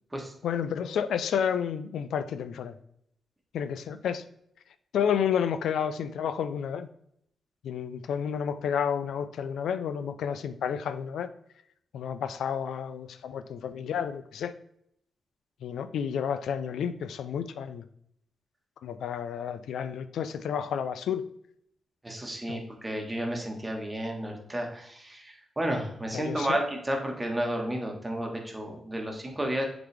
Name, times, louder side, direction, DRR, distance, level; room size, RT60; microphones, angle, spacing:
voice 1, 0.4-2.8 3.5-4.2 4.9-6.9 7.6-11.3 11.9-14.5 15.6-17.8 18.8-21.3 22.5-22.6 26.1-26.5, left 8 dB, 90° left, 12 dB, 0.4 m, -30 dB
voice 2, 22.0-29.6, right 1 dB, 15° right, 1 dB, 1.4 m, -32 dB
7.6 x 4.0 x 3.4 m, 0.71 s
cardioid pair, 90°, 0 cm